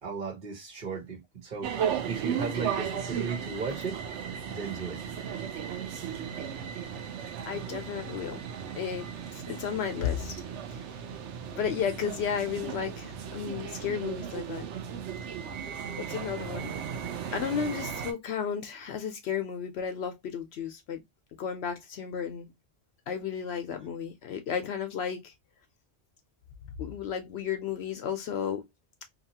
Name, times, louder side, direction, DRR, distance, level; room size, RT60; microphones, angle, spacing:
voice 1, 0.0-4.0 4.4-5.0 7.2-7.3 14.6-14.7 15.7-16.0, right 5 dB, 50° right, 1.2 m, -36 dB
sound 1, 1.6-18.1, right 8 dB, 85° right, 0.9 m, -36 dB
voice 2, 7.5-8.4 8.8-10.3 11.5-14.7 16.0-16.7 17.3-21.0 21.4-22.5 23.1-25.3 26.8-28.6, left 7 dB, 70° left, 0.8 m, -33 dB
2.7 x 2.4 x 2.7 m
omnidirectional pair, 1.2 m